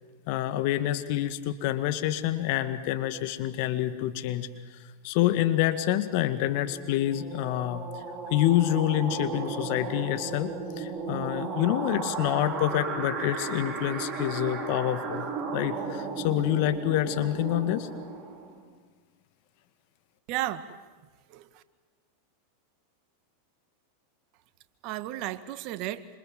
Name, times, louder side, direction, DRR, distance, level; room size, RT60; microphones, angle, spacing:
voice 1, 0.3-4.5 5.0-7.8 8.3-15.3 15.5-17.9, left 13 dB, 55° left, 11 dB, 1.9 m, -27 dB
sound 1, 6.3-18.7, right 5 dB, 25° right, 5.6 m, -35 dB
voice 2, 20.3-20.8 21.3-21.6 24.8-26.1, right 14 dB, 50° right, 12 dB, 1.7 m, -34 dB
27.0 x 26.5 x 7.7 m, 1.4 s
hypercardioid pair, 100°, 0 cm